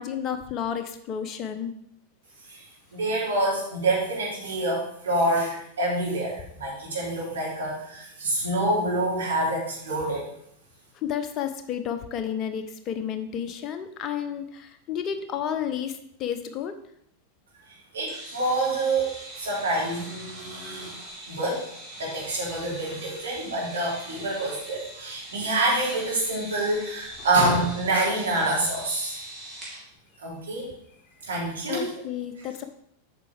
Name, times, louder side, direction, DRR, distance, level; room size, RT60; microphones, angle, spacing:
voice 1, 0.0-1.7 10.9-16.7 31.7-32.6, left 8 dB, 35° left, 8 dB, 0.9 m, -31 dB
voice 2, 2.9-10.3 17.9-19.1 19.4-21.6 22.0-29.2 30.2-30.7 31.2-31.9, right 2 dB, 65° right, -6 dB, 4.0 m, -27 dB
sound 1, 18.1-29.8, right 1 dB, 20° right, 3.6 m, -42 dB
8.7 x 6.0 x 4.9 m, 0.70 s
figure-of-eight pair, 90°, 0 cm